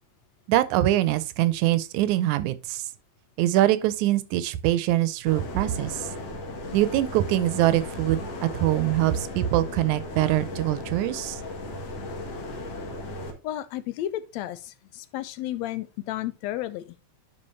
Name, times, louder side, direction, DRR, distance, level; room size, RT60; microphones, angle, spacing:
voice 1, 0.5-2.9 3.4-6.1 6.7-11.4, right 14 dB, 85° right, 2.1 m, -23 dB
sound 1, 5.3-13.3, left 2 dB, 60° left, 2.5 m, -36 dB
voice 2, 13.4-17.0, left 13 dB, 80° left, 1.7 m, -33 dB
11.0 x 4.9 x 3.1 m
omnidirectional pair, 3.3 m